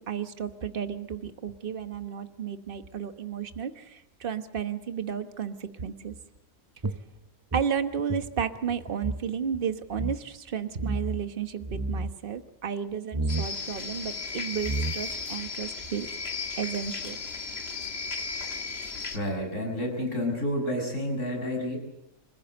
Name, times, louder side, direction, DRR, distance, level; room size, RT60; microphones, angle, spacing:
voice 1, 0.0-6.1 7.5-16.1 16.6-17.2, right 7 dB, 45° right, 9 dB, 1.3 m, -33 dB
sound 1, 6.8-9.3 9.5-9.6 9.9-10.2 10.8-11.2 11.6-12.1 13.1-13.5 14.3-14.4 14.6-15.3, right 2 dB, 20° right, 0.6 m, -31 dB
sound 2, 13.3-19.2, left 4 dB, 50° left, 1.9 m, -35 dB
voice 2, 19.1-21.8, equal, 70° left, 2 dB, 7.2 m, -30 dB
26.5 x 15.5 x 7.9 m, 0.89 s
omnidirectional pair, 1.4 m